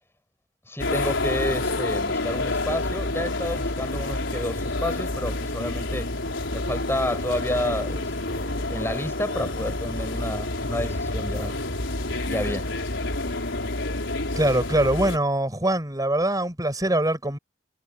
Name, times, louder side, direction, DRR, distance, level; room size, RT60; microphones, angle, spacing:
voice 1, 0.7-6.1 6.5-11.6 12.3-12.7, left 1 dB, 15° left, 5.2 m, -30 dB
sound 1, 0.8-15.2, left 2 dB, 75° left, 4.6 m, -28 dB
voice 2, 14.3-17.4, right 1 dB, 20° right, 6.3 m, -23 dB
head